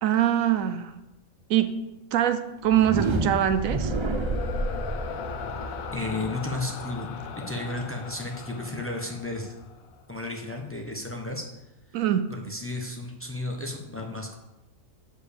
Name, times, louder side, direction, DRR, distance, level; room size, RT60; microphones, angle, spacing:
voice 1, 0.0-0.9 1.5-1.8 2.1-3.9 11.9-12.3, right 10 dB, 80° right, 10 dB, 1.0 m, -23 dB
sound 1, 2.6-10.0, left 7 dB, 90° left, 1.1 m, -38 dB
sound 2, 2.7-8.5, right 3 dB, 50° right, 0.3 m, -31 dB
voice 2, 5.9-9.6 10.1-11.4 12.3-14.4, left 2 dB, 10° left, 1 dB, 1.0 m, -33 dB
7.5 x 5.0 x 6.8 m, 0.95 s
omnidirectional pair, 1.4 m